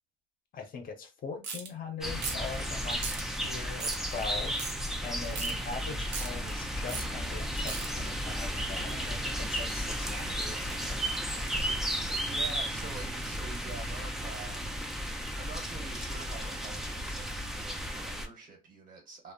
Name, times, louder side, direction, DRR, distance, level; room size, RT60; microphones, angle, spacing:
voice 1, 0.5-3.1 3.4-4.6 5.0-11.4, left 5 dB, 50° left, 0.6 m, -42 dB
sound 1, 1.4-1.7 2.2-2.5 3.0-3.2 3.8-4.0 4.6-4.7 5.4-5.5 6.1-6.3 6.9-7.1 7.7-7.9, right 5 dB, 80° right, 0.8 m, -36 dB
sound 2, 2.0-18.3, equal, ahead, 0.4 m, -34 dB
voice 2, 12.2-14.8 15.1-19.3, right 4 dB, 45° right, 1.2 m, -46 dB
2.6 x 2.0 x 2.5 m
cardioid pair, 105°, 19 cm